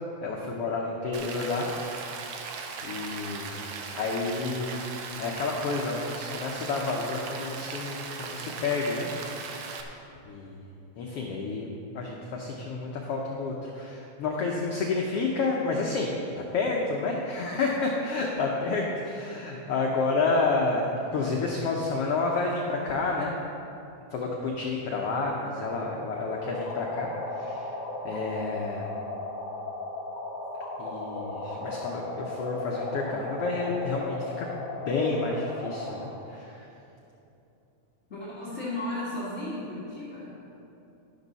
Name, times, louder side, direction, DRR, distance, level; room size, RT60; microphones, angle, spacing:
voice 1, 0.2-2.4 2.8-3.7 3.9-4.8 5.2-9.7 10.2-10.6 11.0-11.7 11.9-16.1 16.4-23.3 24.1-27.7 28.0-28.9 30.8-34.5 34.9-36.7, left 3 dB, 70° left, -1 dB, 1.4 m, -30 dB
Rain, 1.1-9.8, right 5 dB, 70° right, 1.5 m, -38 dB
sound 1, 26.2-36.2, left 2 dB, 55° left, 1.3 m, -36 dB
voice 2, 38.1-40.3, left 1 dB, 35° left, -9 dB, 1.2 m, -35 dB
11.5 x 10.5 x 4.1 m, 2.8 s
omnidirectional pair, 3.6 m